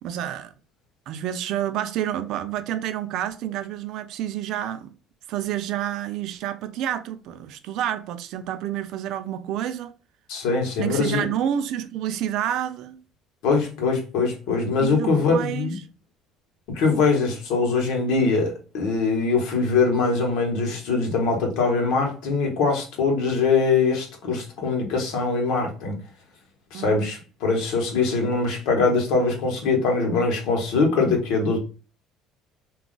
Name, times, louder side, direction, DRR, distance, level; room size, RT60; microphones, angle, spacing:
voice 1, 0.0-0.5 1.1-4.9 5.3-9.9 10.8-13.0 14.8-15.8 26.7-27.0, right 11 dB, 70° right, 0.4 m, -29 dB
voice 2, 10.3-11.3 13.4-15.7 16.7-26.0 26.7-31.6, left 4 dB, 80° left, 1.0 m, -22 dB
2.4 x 2.3 x 3.7 m
cardioid pair, 110°, 0 cm